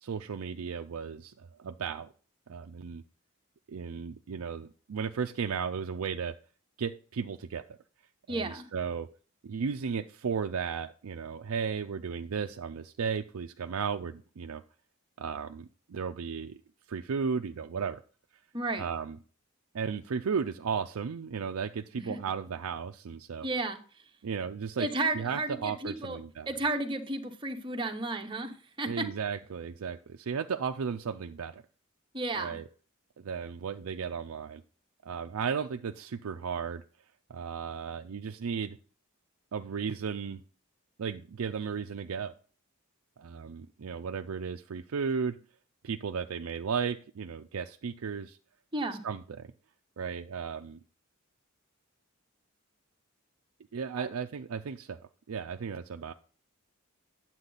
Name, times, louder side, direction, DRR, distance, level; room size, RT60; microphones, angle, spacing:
voice 1, 0.0-2.1 2.5-3.0 3.7-6.4 6.8-7.6 8.3-9.1 9.4-14.6 15.2-16.6 16.9-18.0 18.8-19.2 19.7-23.5 24.2-24.9 25.1-26.5 28.9-31.6 32.3-32.6 33.2-34.6 35.0-36.8 37.3-38.8 39.5-40.4 41.0-42.3 43.2-45.4 45.8-48.4 49.0-49.5 50.0-50.8 53.7-55.0 55.3-56.1, right 6 dB, 85° right, 6 dB, 0.5 m, -35 dB
voice 2, 8.3-8.7 18.5-18.8 22.0-22.2 23.4-23.8 24.8-26.2 26.5-29.1 32.1-32.6 48.7-49.0 54.0-54.1, right 2 dB, 20° right, 4 dB, 0.9 m, -33 dB
9.8 x 7.6 x 3.9 m, 0.40 s
head